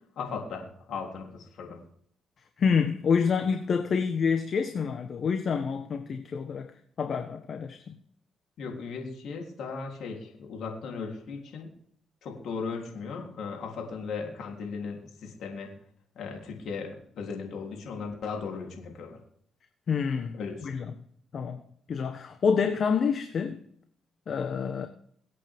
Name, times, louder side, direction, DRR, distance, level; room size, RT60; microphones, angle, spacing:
voice 1, 0.2-1.8 8.6-11.7 12.2-15.7 16.2-19.2 20.3-20.7, left 5 dB, 75° left, 3.5 m, -37 dB
voice 2, 2.6-6.7 7.0-7.8 19.9-20.8 21.3-21.6 21.9-23.6 24.3-24.9, left 6 dB, 55° left, 1.3 m, -27 dB
24.0 x 8.5 x 3.7 m
cardioid pair, 75°, 0 cm